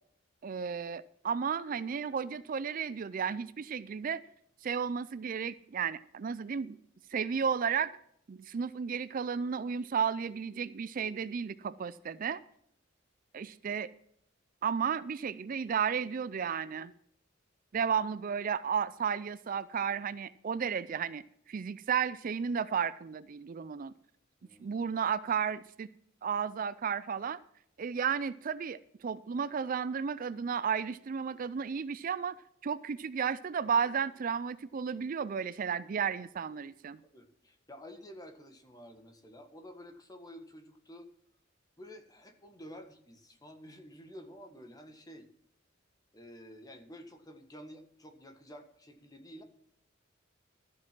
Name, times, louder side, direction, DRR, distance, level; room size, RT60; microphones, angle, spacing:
voice 1, 0.4-4.2 4.6-6.8 7.1-7.9 8.3-12.4 13.3-13.9 14.6-16.9 17.7-21.2 21.5-23.9 24.6-25.9 26.2-27.4 27.8-32.4 32.6-37.0, right 7 dB, 45° right, 17 dB, 0.4 m, -33 dB
voice 2, 24.4-24.8 37.0-41.1 41.8-45.3 46.1-49.4, equal, 20° left, 6 dB, 1.5 m, -51 dB
13.0 x 7.5 x 6.0 m, 0.70 s
head